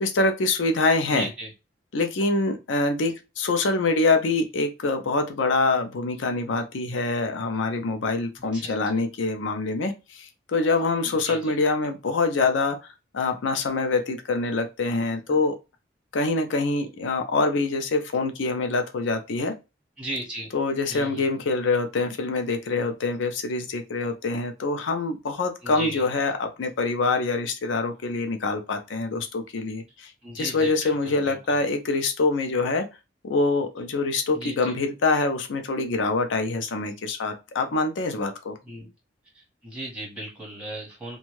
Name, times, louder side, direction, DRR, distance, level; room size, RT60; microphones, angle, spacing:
voice 1, 0.0-1.3 1.9-12.8 13.1-15.5 16.1-19.5 20.5-30.1 30.4-32.9 33.2-38.5, left 3 dB, 85° left, 6 dB, 0.5 m, -25 dB
voice 2, 1.1-1.5 8.5-8.7 11.2-11.5 15.3-15.4 20.0-20.5 20.9-21.2 25.6-26.0 30.2-31.4 34.3-34.7 38.7-38.9 39.3-41.2, right 1 dB, 5° right, -4 dB, 1.4 m, -36 dB
2.6 x 2.2 x 3.0 m, 0.27 s
head